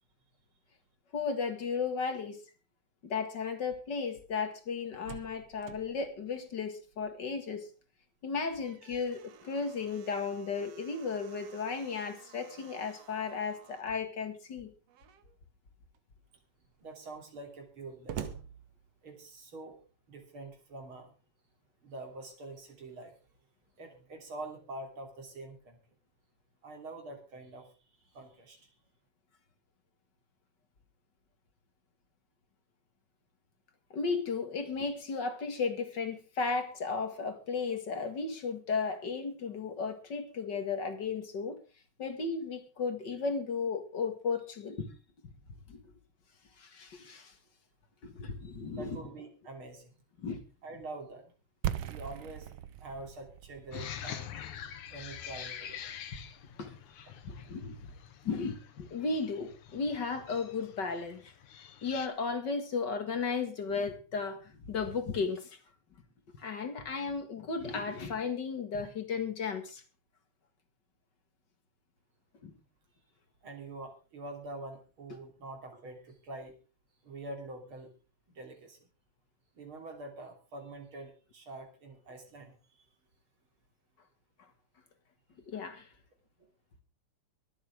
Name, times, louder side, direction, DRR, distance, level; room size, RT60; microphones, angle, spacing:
voice 1, 1.1-2.4 3.0-7.7 8.2-14.7 33.9-41.6 42.0-44.9 45.7-45.8 46.6-47.3 48.0-49.0 50.2-50.4 53.7-53.8 56.6-56.7 57.3-57.9 58.2-61.3 61.8-65.6 66.3-69.8 72.4-72.5 85.5-85.9, left 5 dB, 40° left, 2.1 m, -35 dB
Slam, 4.6-7.4 7.8-7.9 8.3-14.0 14.9-15.4 15.9-16.0 16.3-19.4, right 9 dB, 60° right, 2.1 m, -49 dB
voice 2, 16.8-18.3 19.0-19.8 20.1-21.1 21.8-23.2 23.8-25.8 26.6-27.7 28.1-28.7 48.8-50.0 50.6-51.3 51.9-52.5 52.8-54.3 54.9-55.9 56.7-56.8 57.3-57.7 73.4-76.5 77.0-77.9 78.3-78.8 79.5-82.8 86.4-86.5, right 2 dB, 45° right, 3.8 m, -45 dB
sound 1, 51.6-57.4, right 11 dB, 85° right, 1.1 m, -41 dB
sound 2, 53.7-62.1, left 9 dB, 80° left, 2.7 m, -46 dB
24.0 x 8.3 x 3.6 m
omnidirectional pair, 3.4 m